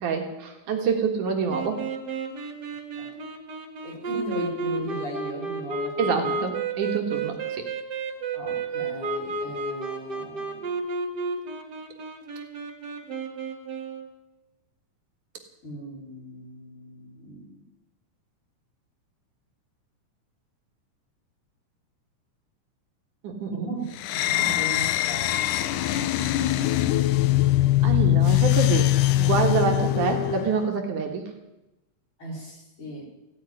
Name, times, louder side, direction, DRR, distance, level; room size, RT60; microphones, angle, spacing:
voice 1, 0.0-1.8 6.0-7.7 23.2-23.7 24.3-24.5 27.8-28.9 29.2-31.3, right 5 dB, 70° right, 3 dB, 3.1 m, -26 dB
sound 1, 1.5-14.1, right 3 dB, 40° right, 1.7 m, -32 dB
voice 2, 3.8-6.4 8.3-10.7 15.6-17.6 23.5-23.8 24.4-25.5 32.2-33.1, right 1 dB, 40° left, -2 dB, 4.8 m, -37 dB
sound 2, 24.0-30.6, left 14 dB, 80° left, 2.1 m, -22 dB
16.0 x 8.7 x 9.7 m, 0.97 s
omnidirectional pair, 3.8 m